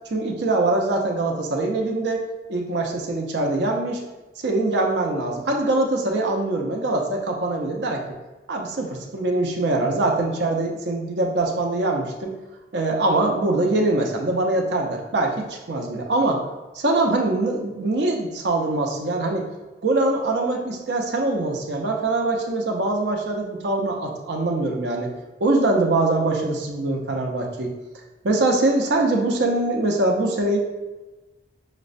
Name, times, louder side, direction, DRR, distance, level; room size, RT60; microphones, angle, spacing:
voice 1, 0.1-2.2 2.5-4.0 4.4-8.0 8.5-12.3 12.7-16.4 16.7-19.5 19.8-25.1 25.4-27.7 28.2-30.6, right 2 dB, 70° right, 2 dB, 0.6 m, -23 dB
5.8 x 2.1 x 2.5 m, 1.1 s
head